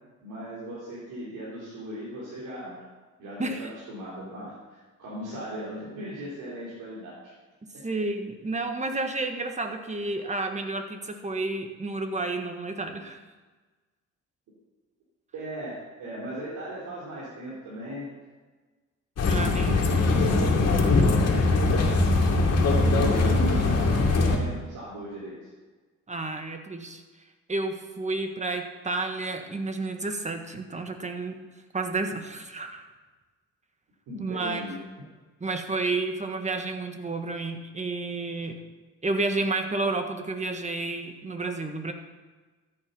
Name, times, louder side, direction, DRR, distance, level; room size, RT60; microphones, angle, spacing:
voice 1, 0.2-2.8 3.2-7.3 15.3-18.1 19.4-20.1 22.8-25.5 34.1-34.8, equal, 85° right, -8 dB, 4.2 m, -37 dB
voice 2, 3.4-3.7 7.6-13.2 19.3-19.7 26.1-27.0 27.5-31.5 31.7-32.9 34.2-34.7 35.4-38.6 39.0-41.9, right 3 dB, 25° right, 6 dB, 1.5 m, -31 dB
sound 1, 19.2-24.4, left 3 dB, 55° left, 2.6 m, -21 dB
14.0 x 9.0 x 5.5 m, 1.3 s
cardioid pair, 90°, 30 cm